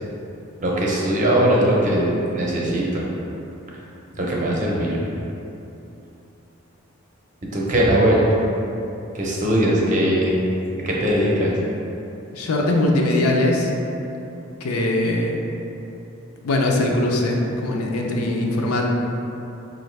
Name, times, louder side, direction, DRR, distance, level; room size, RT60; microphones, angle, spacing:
voice 1, 0.6-3.0 4.1-5.0 7.5-8.3 9.1-10.4 10.8-11.6, right 1 dB, 35° right, -4 dB, 0.6 m, -20 dB
voice 2, 12.3-13.7 14.6-15.3 16.4-18.9, left 1 dB, 85° left, 0 dB, 0.5 m, -21 dB
4.7 x 2.5 x 3.2 m, 2.8 s
head